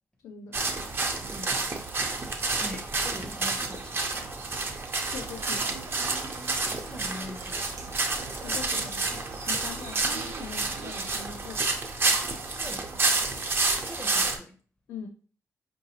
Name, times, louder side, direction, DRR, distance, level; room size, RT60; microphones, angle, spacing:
voice 1, 0.2-0.6 5.1-6.2 8.4-11.8 14.9-15.1, left 6 dB, 90° left, 0.4 m, -42 dB
sound 1, 0.5-14.4, right 3 dB, 40° right, 0.5 m, -29 dB
voice 2, 1.3-1.6 2.6-4.1 6.8-7.9 12.6-12.8 13.8-14.6, left 1 dB, 15° left, 0.5 m, -42 dB
sound 2, 5.4-11.0, right 5 dB, 85° right, 0.6 m, -46 dB
4.7 x 2.6 x 2.7 m
wide cardioid pair, 130°, 6 cm